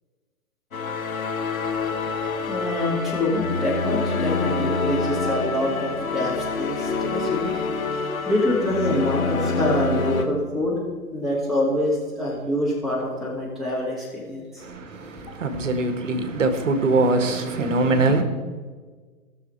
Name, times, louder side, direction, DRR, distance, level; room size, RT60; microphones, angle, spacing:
sound 1, 0.7-10.2, left 4 dB, 65° left, 1.4 m, -26 dB
voice 1, 2.5-7.5 8.3-10.8 11.1-14.6, left 1 dB, ahead, 2.2 m, -25 dB
voice 2, 14.6-18.2, right 2 dB, 55° right, 1.4 m, -22 dB
17.5 x 6.7 x 4.5 m
figure-of-eight pair, 120°, 44 cm